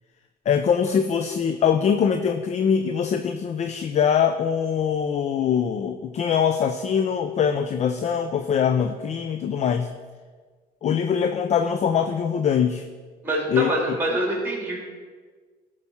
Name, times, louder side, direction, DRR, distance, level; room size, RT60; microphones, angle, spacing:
voice 1, 0.5-9.9 10.8-12.8 13.5-14.0, left 7 dB, 40° left, 8 dB, 0.5 m, -23 dB
voice 2, 13.2-14.8, right 1 dB, 10° right, -1 dB, 3.2 m, -25 dB
13.0 x 4.9 x 5.6 m, 1.5 s
cardioid pair, 110°, 17 cm